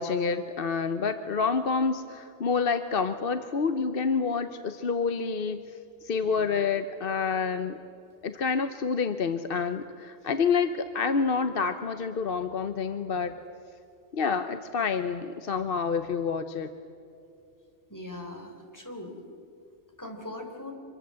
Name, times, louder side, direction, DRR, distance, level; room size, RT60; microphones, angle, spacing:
voice 1, 0.0-5.6 6.0-7.8 8.2-13.4 14.1-16.7, left 5 dB, 50° left, 9 dB, 1.0 m, -28 dB
voice 2, 17.9-19.2 20.0-20.7, left 1 dB, 15° left, 2 dB, 3.6 m, -40 dB
25.5 x 23.0 x 7.6 m, 2.7 s
omnidirectional pair, 1.4 m